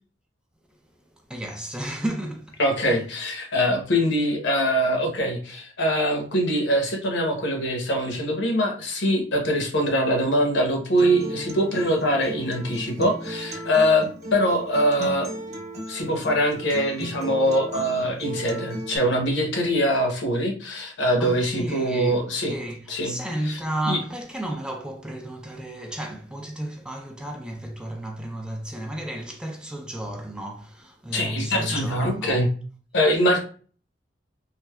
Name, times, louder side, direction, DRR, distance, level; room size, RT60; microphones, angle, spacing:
voice 1, 1.3-3.0 21.2-32.4, right 1 dB, 5° right, 0.3 m, -33 dB
voice 2, 2.6-15.4 15.9-22.5 22.9-23.2 23.4-23.6 23.9-24.0 31.1-32.5 32.9-33.4, equal, 70° left, 0.9 m, -23 dB
Acoustic guitar, 11.0-19.0, equal, 40° right, 0.8 m, -35 dB
3.2 x 2.6 x 2.2 m
head